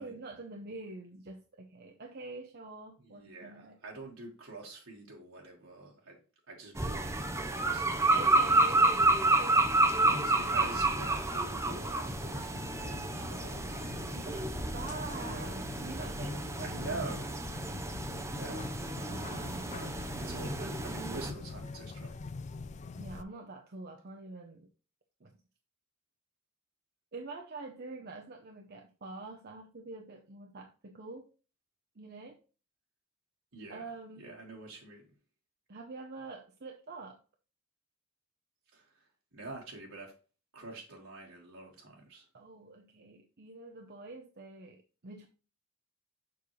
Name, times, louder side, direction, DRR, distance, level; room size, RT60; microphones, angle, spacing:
voice 1, 0.0-3.8 8.1-8.9 9.4-10.0 10.4-10.8 14.1-17.0 19.1-19.8 23.0-24.7 25.2-25.3 27.1-31.3 32.0-32.4 33.7-34.2 35.7-37.2 42.3-45.3, right 3 dB, 50° right, 0.8 m, -46 dB
voice 2, 3.0-6.2 6.5-8.9 10.0-13.7 15.1-15.6 16.6-17.4 18.3-19.3 19.7-19.9 20.2-22.1 33.5-33.8 34.2-35.1 38.7-40.1 40.5-42.3, right 2 dB, 70° right, 1.6 m, -46 dB
sound 1, 6.8-21.3, right 2 dB, 15° right, 0.6 m, -30 dB
sound 2, 12.1-23.2, left 3 dB, 35° left, 0.4 m, -44 dB
6.9 x 5.4 x 3.2 m
head